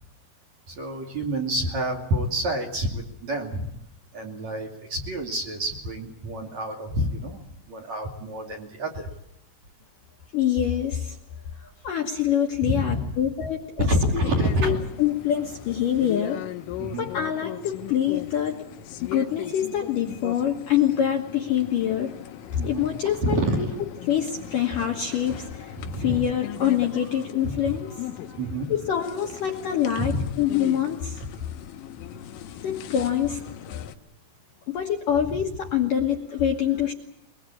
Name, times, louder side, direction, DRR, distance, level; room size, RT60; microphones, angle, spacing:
voice 1, 0.7-3.7 4.1-9.1 12.6-13.1 13.8-14.8 16.8-17.1 22.6-22.9 23.2-23.7 25.7-26.2 27.4-27.8 28.4-28.7 30.0-30.3, equal, 40° right, 1 dB, 3.2 m, -28 dB
voice 2, 10.3-11.2 11.6-14.2 14.6-16.4 17.0-18.6 19.1-22.1 22.6-23.4 24.1-28.4 28.7-31.3 32.6-33.4 34.7-36.9, left 10 dB, 65° left, 1 dB, 2.3 m, -25 dB
sound 1, 14.2-34.0, left 11 dB, 90° left, 3.8 m, -39 dB
22.5 x 21.5 x 8.6 m, 0.81 s
omnidirectional pair, 5.6 m